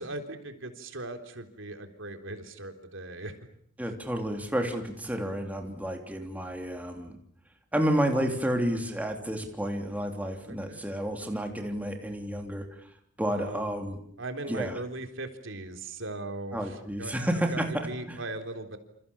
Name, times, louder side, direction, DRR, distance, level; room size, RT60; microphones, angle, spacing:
voice 1, 0.0-3.4 10.4-10.8 13.3-13.6 14.2-17.1 17.5-18.8, right 2 dB, 65° right, 6 dB, 3.8 m, -39 dB
voice 2, 3.8-7.1 7.7-12.7 13.2-14.0 14.5-14.8 16.5-18.2, equal, 10° right, 3 dB, 3.3 m, -30 dB
28.5 x 27.5 x 7.2 m, 0.64 s
head